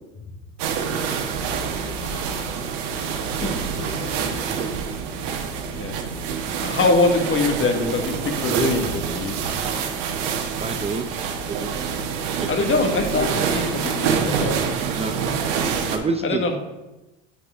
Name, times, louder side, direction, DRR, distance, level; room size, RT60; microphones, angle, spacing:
sound 1, 0.6-16.0, right 6 dB, 70° right, 1.2 m, -26 dB
voice 1, 1.8-2.6 3.1-4.7, left 10 dB, 60° left, 0.6 m, -41 dB
voice 2, 4.1-4.7 10.6-11.1 11.5-11.7 12.4-12.5 13.3-13.4 14.9-15.3 15.9-16.4, right 3 dB, 15° right, 0.5 m, -28 dB
voice 3, 6.6-9.4 12.5-14.6 16.2-16.6, left 3 dB, 35° left, 1.4 m, -23 dB
8.6 x 4.8 x 3.5 m
hypercardioid pair, 80°, 38 cm